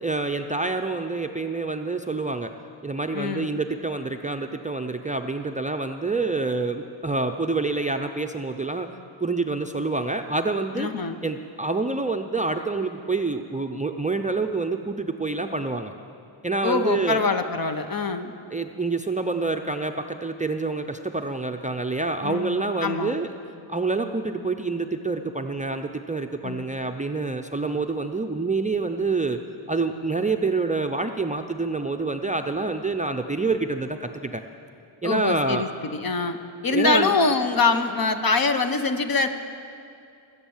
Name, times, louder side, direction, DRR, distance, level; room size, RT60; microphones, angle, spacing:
voice 1, 0.0-2.5 2.8-8.9 9.2-10.9 11.2-15.9 16.4-17.2 18.5-23.3 23.7-29.4 29.7-34.4 35.0-35.6 36.7-37.1, right 3 dB, 15° right, 5 dB, 0.5 m, -27 dB
voice 2, 3.1-3.5 10.7-11.2 16.6-18.3 22.2-23.1 26.4-26.7 35.0-36.4 36.6-39.3, left 4 dB, 45° left, 7 dB, 1.1 m, -24 dB
20.5 x 8.2 x 7.2 m, 2.5 s
cardioid pair, 85°, 48 cm